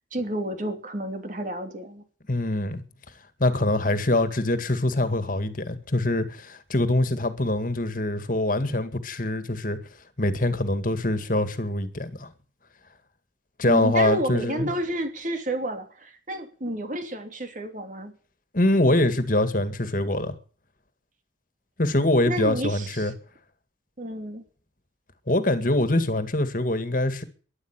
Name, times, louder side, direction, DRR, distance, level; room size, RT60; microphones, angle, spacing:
voice 1, 0.1-2.0 13.6-18.1 22.2-23.1 24.0-24.4, right 1 dB, 45° right, 3.0 m, -30 dB
voice 2, 2.3-2.8 3.4-9.8 10.2-12.3 13.6-14.7 18.5-20.3 21.8-23.1 25.3-27.2, left 1 dB, 45° left, 2.1 m, -24 dB
12.5 x 11.5 x 9.0 m
head